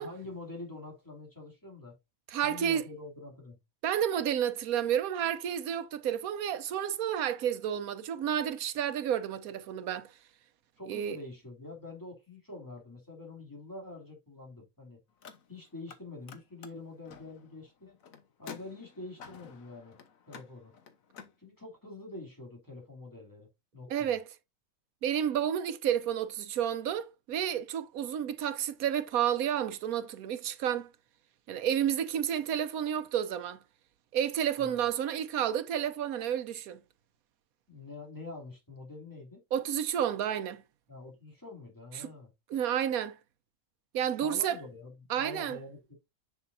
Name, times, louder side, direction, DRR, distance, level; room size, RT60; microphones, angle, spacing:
voice 1, 0.0-2.0 2.4-3.6 10.8-15.0 15.5-18.0 18.4-20.0 20.3-20.7 21.4-24.2 34.6-34.9 37.7-39.4 40.9-42.3 44.2-45.9, left 2 dB, 15° left, 2.7 m, -46 dB
voice 2, 2.3-2.8 3.8-10.1 10.9-11.2 23.9-24.2 25.0-30.9 31.5-33.6 34.1-36.8 39.5-40.6 41.9-42.1 42.5-43.2 43.9-44.6 45.1-45.6, right 9 dB, 85° right, 1.2 m, -31 dB
Car, 15.1-16.0 16.2-21.3, left 6 dB, 75° left, 1.4 m, -51 dB
6.8 x 6.7 x 2.6 m
omnidirectional pair, 1.5 m